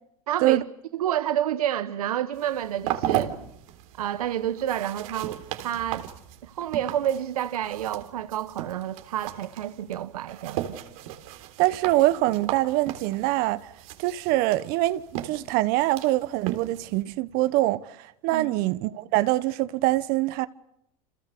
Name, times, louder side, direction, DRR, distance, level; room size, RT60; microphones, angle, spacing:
voice 1, 0.3-0.6 0.9-3.3 4.0-6.1 6.4-10.8 18.3-18.5, right 11 dB, 90° right, 1.1 m, -29 dB
sound 1, 2.3-17.0, right 13 dB, 70° right, 3.6 m, -36 dB
voice 2, 11.6-13.7 14.0-20.5, right 17 dB, 55° right, 1.3 m, -24 dB
29.0 x 27.5 x 6.9 m
supercardioid pair, 115°, 18 cm